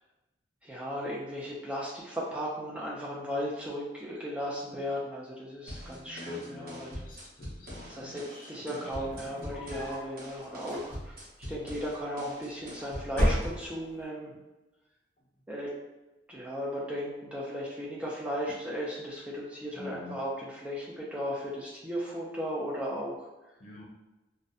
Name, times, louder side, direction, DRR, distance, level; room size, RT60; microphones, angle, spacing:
voice 1, 0.6-6.9 7.9-14.3 15.5-15.7 16.3-23.3, equal, 5° right, -6 dB, 0.3 m, -36 dB
sound 1, 5.7-13.7, equal, 50° right, 0.8 m, -44 dB
voice 2, 5.8-9.7 19.7-20.2 23.6-23.8, left 2 dB, 45° left, -2 dB, 0.5 m, -47 dB
sound 2, 8.9-10.1 10.6-11.3 12.2-12.7 13.1-14.0, equal, 10° left, 0.7 m, -31 dB
2.4 x 2.1 x 2.6 m, 1.1 s
head